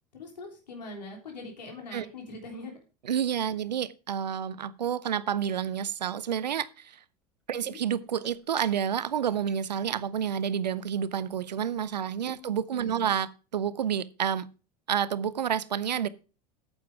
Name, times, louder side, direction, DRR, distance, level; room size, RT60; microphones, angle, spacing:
voice 1, 0.1-2.7 7.5-7.8 12.3-13.1, left 2 dB, 80° left, 3.4 m, -43 dB
voice 2, 3.0-7.0 7.5-14.5 14.9-16.1, right 8 dB, 80° right, 0.7 m, -29 dB
Shatter / Crushing, 7.2-7.3 7.5-12.4, right 2 dB, ahead, 4.1 m, -56 dB
9.3 x 8.0 x 4.7 m
hypercardioid pair, 80°, 21 cm